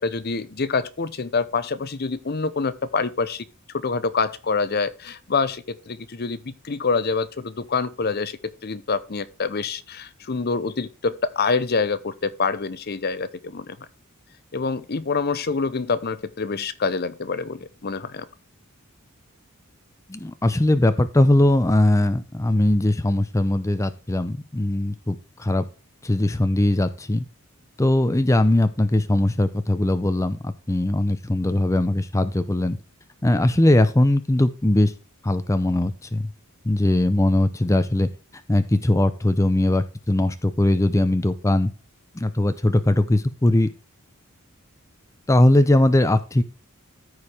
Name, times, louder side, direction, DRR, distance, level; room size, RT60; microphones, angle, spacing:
voice 1, 0.0-3.4 3.8-13.8 14.5-18.3, left 4 dB, 45° left, 0.7 m, -26 dB
voice 2, 20.1-25.7 26.0-27.2 27.8-32.8 33.2-34.9 35.2-36.3 36.6-38.1 38.5-41.7 42.1-43.7 45.3-46.4, left 1 dB, 15° left, 0.5 m, -20 dB
14.0 x 4.8 x 3.4 m
head